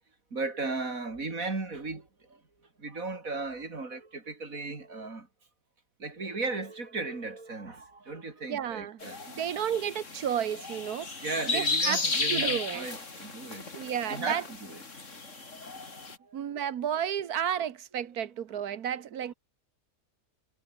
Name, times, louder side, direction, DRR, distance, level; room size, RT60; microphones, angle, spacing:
voice 1, 0.3-2.4 2.8-5.3 6.0-9.3 11.2-13.7 14.1-14.8 15.3-15.4 16.2-16.4 19.2-19.3, right 3 dB, 65° right, 3.9 m, -36 dB
voice 2, 8.5-9.0 9.3-11.2 11.5-12.0 12.3-12.8 13.7-14.4 16.3-19.3, right 9 dB, 90° right, 1.6 m, -32 dB
sound 1, 9.0-16.2, left 3 dB, 55° left, 3.3 m, -34 dB
omnidirectional pair, 1.6 m